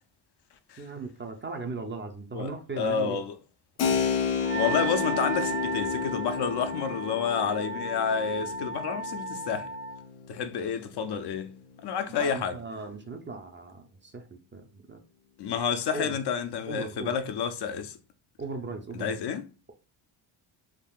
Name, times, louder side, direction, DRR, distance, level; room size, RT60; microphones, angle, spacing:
voice 1, 0.8-3.2 12.1-15.0 15.4-15.6 15.9-16.2 16.7-17.2 18.4-19.2, right 3 dB, 25° right, 0.5 m, -38 dB
voice 2, 2.8-3.4 4.5-9.7 10.3-12.5 15.4-18.0 18.9-19.5, left 7 dB, 55° left, 0.5 m, -30 dB
Keyboard (musical), 3.8-12.2, left 6 dB, 90° left, 0.7 m, -32 dB
Wind instrument woodwind instrument, 4.4-10.0, right 3 dB, 75° right, 1.0 m, -35 dB
3.6 x 2.4 x 2.3 m
cardioid pair, 75°, 50 cm